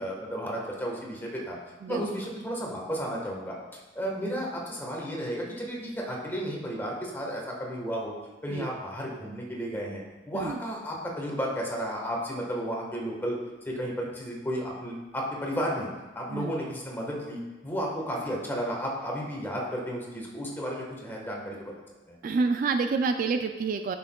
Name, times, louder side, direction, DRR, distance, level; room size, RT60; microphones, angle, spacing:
voice 1, 0.0-1.6 1.9-3.5 3.9-8.1 8.4-13.3 13.6-15.9 16.1-21.7 22.1-22.2, equal, 10° left, -2 dB, 1.3 m, -33 dB
voice 2, 22.2-24.0, right 4 dB, 50° right, 7 dB, 0.3 m, -28 dB
10.0 x 5.9 x 2.3 m, 1.2 s
head